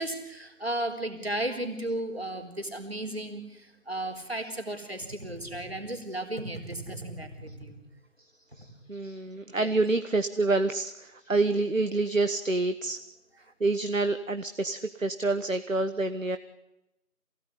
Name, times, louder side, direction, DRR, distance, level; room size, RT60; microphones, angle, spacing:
voice 1, 0.0-7.8 9.6-9.7, right 1 dB, 40° right, 4 dB, 4.1 m, -34 dB
voice 2, 8.6-10.9 11.3-13.0 13.6-16.4, right 3 dB, 60° right, 10 dB, 1.4 m, -27 dB
27.5 x 17.5 x 9.9 m, 0.91 s
figure-of-eight pair, 175°, 45 cm